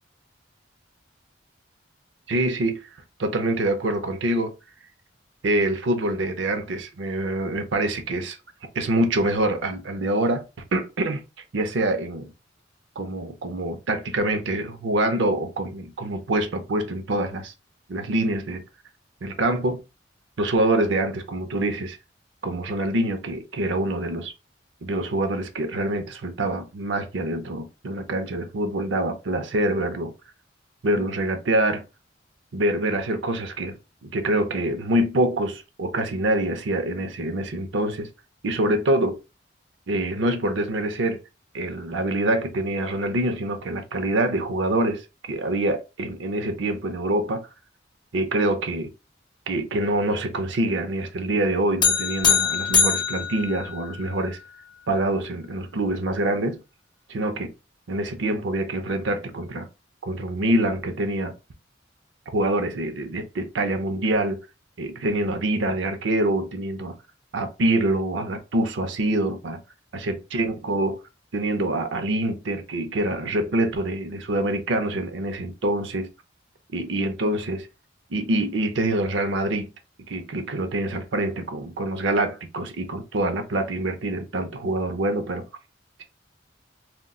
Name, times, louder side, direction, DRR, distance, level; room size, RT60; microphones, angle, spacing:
voice 1, 2.3-2.8 3.2-4.5 5.4-8.4 8.7-10.4 10.7-11.2 11.5-12.3 13.0-17.5 17.9-18.6 19.2-19.8 20.4-22.0 22.4-24.3 24.8-30.1 30.8-31.8 32.5-38.1 38.4-39.2 39.9-41.2 41.5-45.0 45.3-47.5 48.1-48.9 49.5-54.4 54.9-56.6 57.1-57.5 57.9-59.7 60.0-61.3 62.3-64.4 64.8-67.0 67.3-69.6 69.9-71.0 71.3-76.1 76.7-77.7 78.1-79.7 80.1-85.4, right 1 dB, 70° right, 0.5 m, -25 dB
sound 1, 51.8-54.3, left 6 dB, 25° left, 0.5 m, -23 dB
2.3 x 2.2 x 3.6 m
head